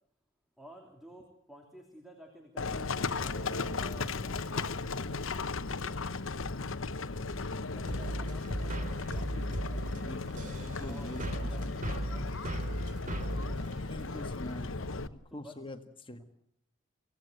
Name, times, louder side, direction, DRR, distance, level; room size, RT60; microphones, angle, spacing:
voice 1, 0.6-5.1 7.7-12.9 13.5-13.7 14.8-15.6, equal, ahead, 2 dB, 3.1 m, -53 dB
Livestock farm animals working animals, 2.6-15.1, left 3 dB, 70° left, 1.0 m, -36 dB
voice 2, 7.5-7.9 10.0-12.0 13.8-14.8 15.1-16.2, left 1 dB, 25° left, 8 dB, 1.6 m, -45 dB
sound 1, 7.9-14.5, right 1 dB, 40° right, 3.0 m, -37 dB
25.5 x 18.0 x 7.9 m, 0.69 s
head